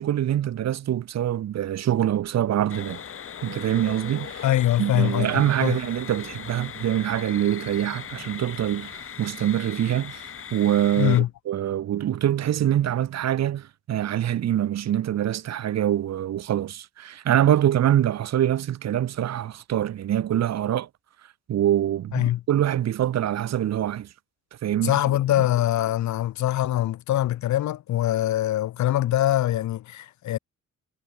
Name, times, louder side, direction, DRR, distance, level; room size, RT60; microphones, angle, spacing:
voice 1, 0.0-3.0 3.4-4.4 4.8-20.9 21.5-24.1 24.6-24.9, right 11 dB, 60° right, 1.2 m, -24 dB
sound 1, 2.7-11.2, left 8 dB, 45° left, 1.8 m, -39 dB
voice 2, 4.4-5.8 11.0-11.3 22.1-22.4 24.8-30.4, left 13 dB, 70° left, 1.0 m, -23 dB
cardioid pair, 90°, 30 cm